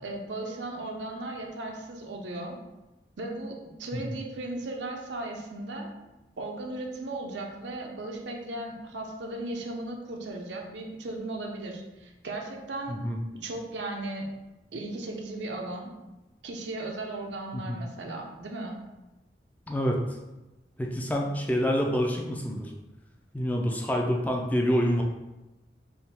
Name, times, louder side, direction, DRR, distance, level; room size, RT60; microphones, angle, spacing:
voice 1, 0.0-2.6 3.2-5.9 6.4-12.9 13.4-14.3 14.7-15.9 16.4-18.8, right 2 dB, 85° right, 1 dB, 0.6 m, -36 dB
voice 2, 12.9-13.2 17.5-17.8 19.7-20.0 20.8-22.7 23.3-25.0, equal, 10° left, 0 dB, 0.4 m, -27 dB
3.5 x 2.3 x 4.2 m, 1.0 s
head